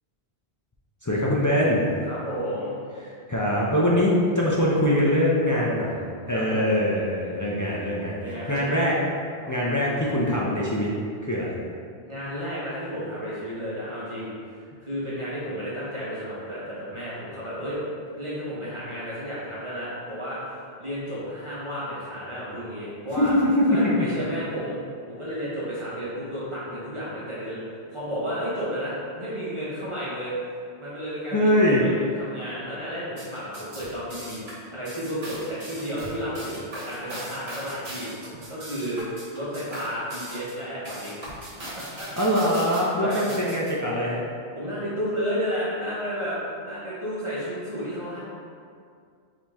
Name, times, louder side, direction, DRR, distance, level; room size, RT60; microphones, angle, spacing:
voice 1, 1.0-1.8 3.1-6.0 6.3-8.2 8.5-8.9 9.5-10.9 11.2-11.5 23.2-23.6 24.0-24.1 31.3-31.8 42.2-44.2, equal, 30° left, -5 dB, 0.3 m, -23 dB
voice 2, 2.1-2.8 6.3-6.7 8.2-8.8 9.4-10.1 12.0-17.8 18.2-23.3 23.7-24.8 25.1-27.6 27.9-30.3 30.8-34.4 34.7-39.0 39.3-42.1 43.0-43.3 44.5-48.2, equal, 30° right, -9 dB, 0.9 m, -32 dB
sound 1, 33.1-43.7, right 1 dB, 75° right, 1.5 m, -40 dB
5.0 x 2.8 x 3.5 m, 2.2 s
omnidirectional pair, 1.1 m